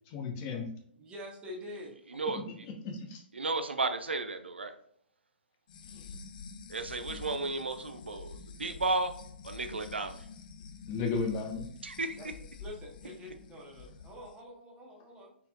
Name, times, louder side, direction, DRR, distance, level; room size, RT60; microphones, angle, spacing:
voice 1, 0.1-0.7 2.6-3.2 5.9-6.1 10.9-11.6, left 4 dB, 30° left, 2 dB, 1.0 m, -34 dB
voice 2, 0.9-1.9 12.2-12.3 12.6-15.4, left 1 dB, 15° right, -1 dB, 1.3 m, -46 dB
voice 3, 3.3-4.7 6.7-9.1 9.4-10.3 11.8-12.2, right 3 dB, 80° right, 8 dB, 0.6 m, -33 dB
sound 1, 5.7-14.3, left 5 dB, 50° left, 0.5 m, -48 dB
4.2 x 4.1 x 2.4 m, 0.65 s
figure-of-eight pair, 120°, 6 cm